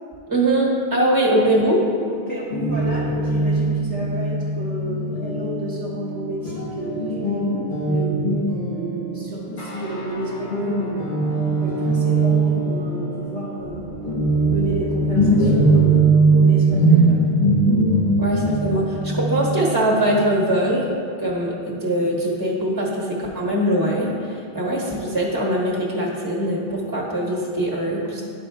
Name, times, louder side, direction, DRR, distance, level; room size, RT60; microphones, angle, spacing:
voice 1, 0.3-1.9 18.2-20.9 21.2-28.2, right 1 dB, 20° right, -4 dB, 1.2 m, -22 dB
voice 2, 2.1-11.1 11.6-13.9 14.5-17.3, equal, 10° left, -9 dB, 1.1 m, -31 dB
Guitar, 2.5-10.2 10.5-20.9, right 2 dB, 35° left, 1.1 m, -21 dB
sound 1, 9.6-17.8, left 1 dB, 85° left, 1.4 m, -41 dB
sound 2, 13.6-19.7, right 2 dB, 50° right, 1.1 m, -40 dB
11.5 x 4.4 x 3.5 m, 2.3 s
omnidirectional pair, 1.1 m